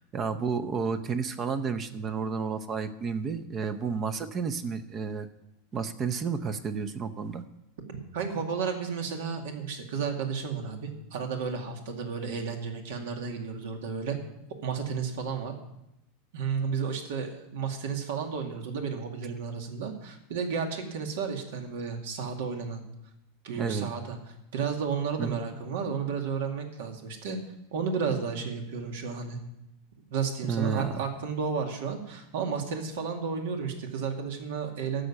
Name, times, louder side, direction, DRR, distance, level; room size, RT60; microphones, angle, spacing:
voice 1, 0.0-5.3 5.7-7.4 23.6-23.9 25.2-25.4 30.5-30.9, right 5 dB, 25° right, 11 dB, 0.7 m, -31 dB
voice 2, 7.9-14.2 14.6-15.6 16.3-22.8 23.4-24.2 24.5-27.4 27.7-29.4 30.1-35.1, right 6 dB, 75° right, 4 dB, 2.2 m, -32 dB
13.0 x 6.6 x 8.5 m, 0.85 s
supercardioid pair, 160°, 0 cm